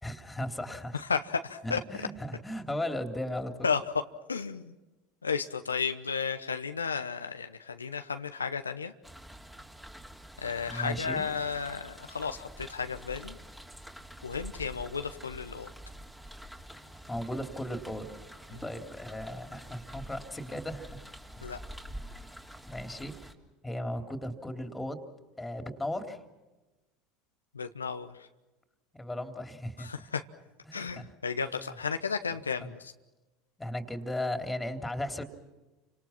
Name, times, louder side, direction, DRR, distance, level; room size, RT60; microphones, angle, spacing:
voice 1, 0.0-1.0 1.6-3.7 10.6-11.2 16.7-18.1 18.6-21.1 22.1-22.2 22.7-23.1 23.6-25.1 25.4-26.2 28.9-29.9 30.7-31.0 32.6-32.7 33.6-35.2, left 1 dB, 10° left, 6 dB, 3.5 m, -36 dB
voice 2, 0.9-2.1 3.6-4.0 4.3-4.7 5.2-8.9 10.4-13.4 14.2-15.7 18.5-18.6 21.4-21.6 27.5-28.3 29.8-30.2 30.7-32.9, left 5 dB, 90° left, 8 dB, 1.0 m, -33 dB
sound 1, 9.0-23.3, equal, 5° right, 3.4 m, -47 dB
30.0 x 26.0 x 5.9 m, 1.1 s
hypercardioid pair, 75°, 0 cm